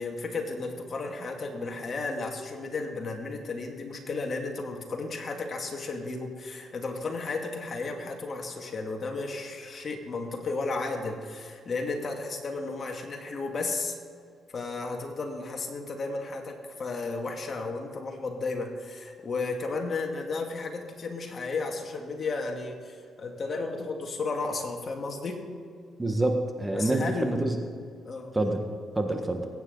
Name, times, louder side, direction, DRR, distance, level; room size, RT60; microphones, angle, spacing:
voice 1, 0.0-14.0 14.5-25.5 26.7-27.5 28.0-28.5, left 3 dB, 45° left, 2 dB, 2.3 m, -33 dB
voice 2, 26.0-27.5 28.3-28.6 29.0-29.5, right 2 dB, 15° right, 4 dB, 1.6 m, -27 dB
22.0 x 9.6 x 4.0 m, 2.2 s
cardioid pair, 90°, 0 cm